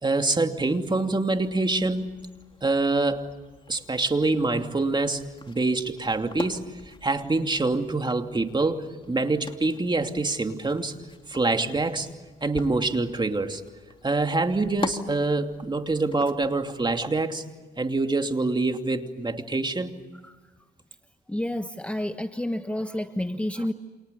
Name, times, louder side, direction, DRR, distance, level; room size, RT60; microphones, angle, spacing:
voice 1, 0.0-2.1 2.6-3.3 3.7-10.9 11.3-12.1 12.4-13.6 14.0-17.4 17.8-20.0, right 3 dB, 20° right, 5 dB, 2.8 m, -25 dB
sound 1, 0.8-17.0, left 3 dB, 25° left, 2.9 m, -43 dB
voice 2, 21.3-23.7, left 1 dB, 5° left, 8 dB, 1.2 m, -29 dB
29.5 x 28.0 x 7.1 m, 1.3 s
cardioid pair, 90°, 20 cm